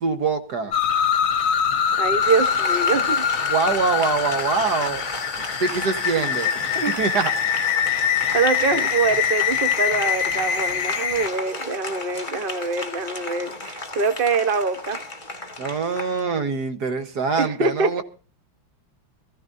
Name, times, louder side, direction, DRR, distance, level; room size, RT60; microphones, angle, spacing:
voice 1, 0.0-0.7 3.5-5.1 5.6-6.7 7.0-7.3 15.6-18.0, right 4 dB, 55° right, 8 dB, 1.7 m, -24 dB
sound 1, 0.7-11.3, left 8 dB, 50° left, 1.2 m, -23 dB
voice 2, 2.0-3.3 6.7-7.0 8.3-15.0 17.4-18.0, right 4 dB, 35° right, 9 dB, 1.0 m, -24 dB
Applause, 2.2-16.2, left 2 dB, 25° left, 1.8 m, -34 dB
22.0 x 15.0 x 2.7 m, 0.36 s
omnidirectional pair, 2.2 m